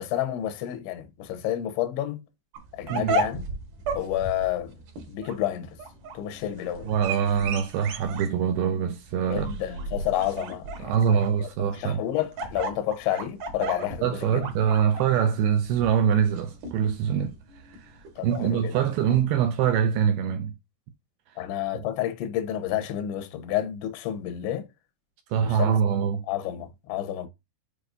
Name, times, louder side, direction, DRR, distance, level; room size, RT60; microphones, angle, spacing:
voice 1, 0.0-2.2 2.7-3.4 4.0-4.8 5.1-5.8 6.1-6.9 9.3-14.5 18.2-18.8 21.4-24.7 25.4-25.8 26.3-27.3, left 12 dB, 85° left, 3.3 m, -30 dB
sound 1, 2.5-19.2, right 2 dB, 55° right, 2.7 m, -35 dB
voice 2, 6.9-9.5 10.8-12.0 14.0-17.4 17.7-20.5 21.7-21.8 25.3-26.2, right 8 dB, 80° right, 2.3 m, -24 dB
8.4 x 4.8 x 2.7 m
omnidirectional pair, 5.1 m